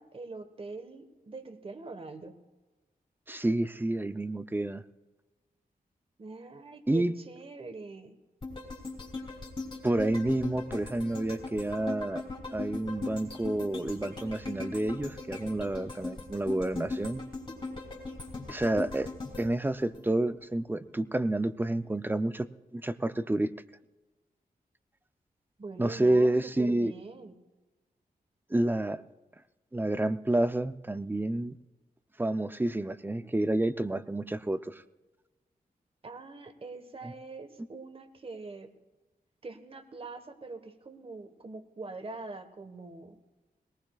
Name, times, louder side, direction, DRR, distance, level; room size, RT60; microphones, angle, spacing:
voice 1, 0.0-2.4 6.2-8.2 25.6-27.3 36.0-38.7 39.4-43.1, right 3 dB, 35° right, 8 dB, 1.3 m, -43 dB
voice 2, 3.3-4.8 6.9-7.1 9.8-12.2 12.5-17.2 18.5-19.1 19.4-22.5 22.7-23.5 25.8-26.9 28.5-29.0 29.7-31.6 32.2-34.8 37.0-37.1, right 1 dB, 15° right, 12 dB, 0.5 m, -29 dB
sound 1, 8.4-20.6 21.0-21.1, left 3 dB, 35° left, 3.3 m, -39 dB
21.0 x 19.0 x 2.4 m, 1.2 s
wide cardioid pair, 115°, 16 cm